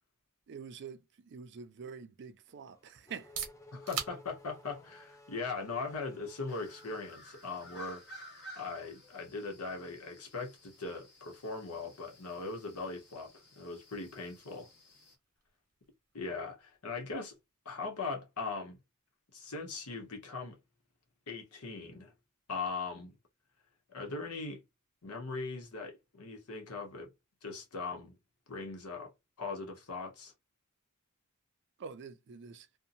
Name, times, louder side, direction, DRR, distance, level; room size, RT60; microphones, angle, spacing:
voice 1, 0.5-3.3 31.8-32.7, right 6 dB, 55° right, 0.4 m, -46 dB
Race car auto racing / Accelerating revving vroom, 2.5-7.7, left 2 dB, 15° left, 0.5 m, -56 dB
sound 1, 3.1-18.7, right 8 dB, 90° right, 0.8 m, -50 dB
voice 2, 3.7-8.0 8.6-13.3 13.6-14.7 16.1-17.3 17.6-18.8 19.3-20.6 21.3-22.1 22.5-23.2 23.9-24.6 25.0-27.1 27.4-28.1 28.5-29.1 29.4-30.3, left 4 dB, 85° left, 1.0 m, -40 dB
sound 2, 6.5-15.2, equal, 55° left, 1.1 m, -55 dB
2.7 x 2.2 x 2.6 m
head